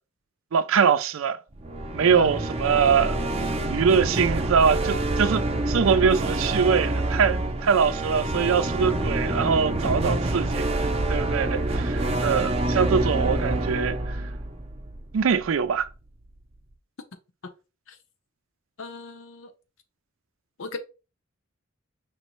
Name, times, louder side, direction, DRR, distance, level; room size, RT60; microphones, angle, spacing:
voice 1, 0.5-1.4 1.9-10.7 11.1-14.2 15.1-15.9, right 6 dB, 80° right, 0.4 m, -23 dB
sound 1, 1.5-15.6, right 2 dB, 30° right, 0.6 m, -27 dB
voice 2, 18.8-19.5 20.6-20.8, left 4 dB, 75° left, 0.7 m, -36 dB
5.1 x 3.1 x 3.0 m
head